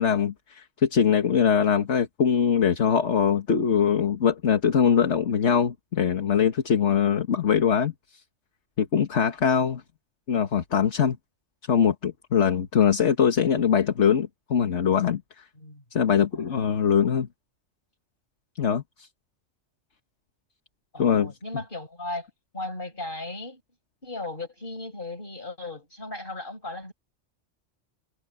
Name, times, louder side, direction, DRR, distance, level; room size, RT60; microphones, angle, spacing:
voice 1, 0.0-7.9 8.8-9.8 10.3-11.2 11.7-15.2 15.9-17.3 18.6-19.1 21.0-21.3, left 7 dB, 65° left, 1.7 m, -22 dB
voice 2, 16.4-16.8 20.9-22.3 22.5-23.6 24.0-26.9, left 2 dB, 45° left, 5.9 m, -36 dB
omnidirectional pair, 1.3 m